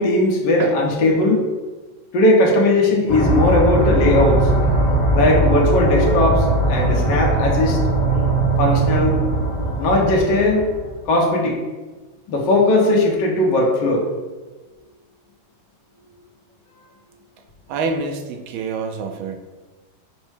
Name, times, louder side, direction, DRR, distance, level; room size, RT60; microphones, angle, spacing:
voice 1, 0.0-1.4 2.1-4.5 5.1-7.8 8.6-9.2 9.8-10.7 11.1-11.6 12.3-14.0, left 1 dB, 70° left, -1 dB, 1.3 m, -18 dB
sound 1, 3.1-10.9, right 2 dB, 45° left, 0.5 m, -19 dB
voice 2, 17.7-19.5, right 4 dB, 80° right, 5 dB, 1.4 m, -27 dB
5.3 x 2.1 x 4.7 m, 1.3 s
omnidirectional pair, 2.2 m